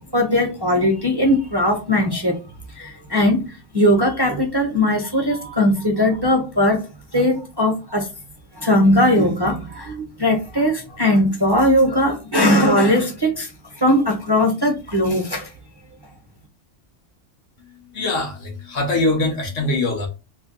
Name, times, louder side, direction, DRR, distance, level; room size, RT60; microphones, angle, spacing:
voice 1, 0.1-2.4 2.7-6.8 7.1-8.1 8.5-15.5, left 1 dB, 25° right, 0.6 m, -19 dB
voice 2, 17.9-20.1, left 2 dB, 85° left, 1.4 m, -22 dB
3.2 x 2.2 x 3.7 m
omnidirectional pair, 1.2 m